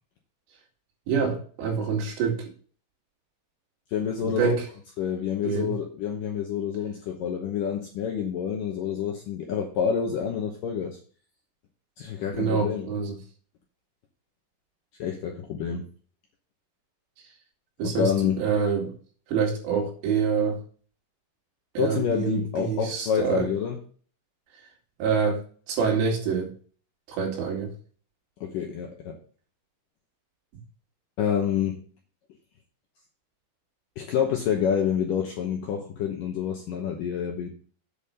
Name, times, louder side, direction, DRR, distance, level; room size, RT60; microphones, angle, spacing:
voice 1, 1.1-2.4 4.2-4.6 5.4-5.7 12.4-13.2 17.8-18.1 18.4-18.9 19.3-20.6 21.8-23.5 25.0-25.4 25.7-26.5 27.1-27.7, right 6 dB, 75° right, 0 dB, 4.4 m, -26 dB
voice 2, 3.9-4.6 5.0-11.0 12.0-12.9 15.0-15.9 17.8-18.4 21.8-23.8 28.4-29.2 31.2-31.8 34.0-37.5, left 8 dB, 75° left, 2 dB, 2.1 m, -28 dB
8.5 x 5.6 x 6.5 m, 0.43 s
omnidirectional pair, 5.1 m